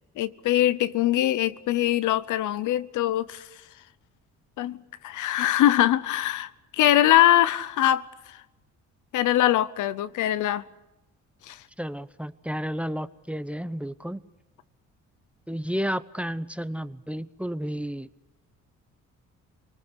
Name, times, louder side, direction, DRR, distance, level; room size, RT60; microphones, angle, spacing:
voice 1, 0.2-3.5 4.6-4.8 5.0-8.4 9.1-10.6 11.5-11.6, left 13 dB, 80° left, 0.9 m, -22 dB
voice 2, 11.8-14.2 15.5-18.1, equal, 5° right, 0.8 m, -32 dB
27.5 x 19.5 x 8.3 m
cardioid pair, 90°, 30 cm